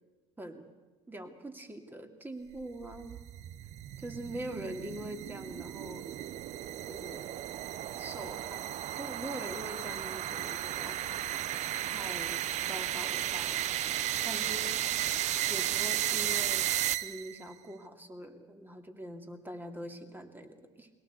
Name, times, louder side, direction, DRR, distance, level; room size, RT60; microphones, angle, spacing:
voice 1, 1.1-3.2 4.0-6.1 6.9-7.3 8.0-8.7 8.9-11.0 11.8-14.0 14.2-14.9 15.5-16.7 17.0-20.9, right 1 dB, 15° right, 5 dB, 2.7 m, -43 dB
sound 1, 2.6-17.4, right 12 dB, 55° right, 0.8 m, -34 dB
22.0 x 18.0 x 8.2 m, 1.2 s
hypercardioid pair, 75°, 14 cm